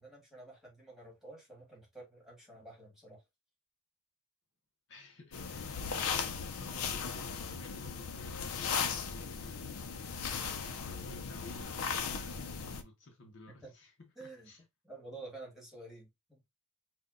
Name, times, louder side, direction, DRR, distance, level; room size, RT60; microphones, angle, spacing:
voice 1, 0.0-3.2 13.6-13.7 14.1-14.5 14.8-16.4, right 2 dB, ahead, 1.6 m, -50 dB
voice 2, 4.9-9.8 10.5-14.6, left 2 dB, 60° left, 0.9 m, -54 dB
sound 1, 5.3-12.8, left 6 dB, 85° left, 0.5 m, -37 dB
5.6 x 2.3 x 2.5 m
head